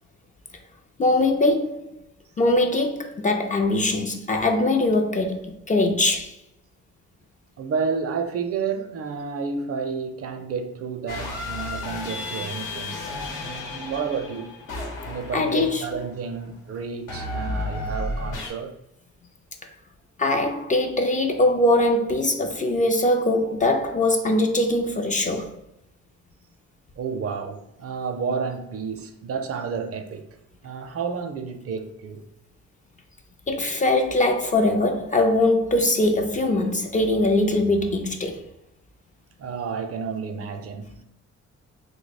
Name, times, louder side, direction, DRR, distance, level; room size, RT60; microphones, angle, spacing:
voice 1, 1.0-1.9 2.4-6.3 15.3-15.8 20.2-25.5 33.5-38.4, left 2 dB, 25° left, 0.4 m, -22 dB
voice 2, 7.6-13.1 13.4-14.6 15.0-18.7 27.0-30.3 30.6-32.2 39.4-41.0, right 5 dB, 50° right, 0.5 m, -31 dB
sound 1, 11.1-16.2 17.1-18.5, left 2 dB, 85° left, 0.9 m, -33 dB
2.8 x 2.1 x 4.0 m
cardioid pair, 90°, 30 cm